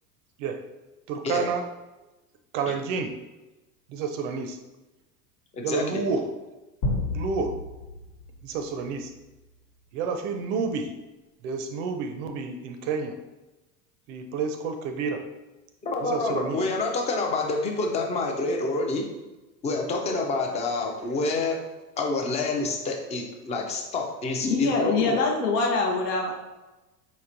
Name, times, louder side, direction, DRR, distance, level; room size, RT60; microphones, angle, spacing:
voice 1, 1.1-1.6 2.5-3.1 3.9-4.6 5.6-6.3 7.1-7.5 8.4-9.1 9.9-10.9 11.4-13.2 14.1-15.2 16.0-16.6, right 5 dB, 55° right, 7 dB, 0.5 m, -29 dB
voice 2, 5.5-6.0 15.8-19.0 19.6-21.6 22.0-25.2, left 3 dB, 15° left, 2 dB, 0.3 m, -28 dB
sound 1, 6.8-9.4, left 2 dB, 60° left, 1.2 m, -32 dB
voice 3, 24.4-26.3, left 4 dB, 80° left, 0 dB, 0.7 m, -24 dB
4.2 x 2.9 x 2.5 m, 1.1 s
hypercardioid pair, 90°, 48 cm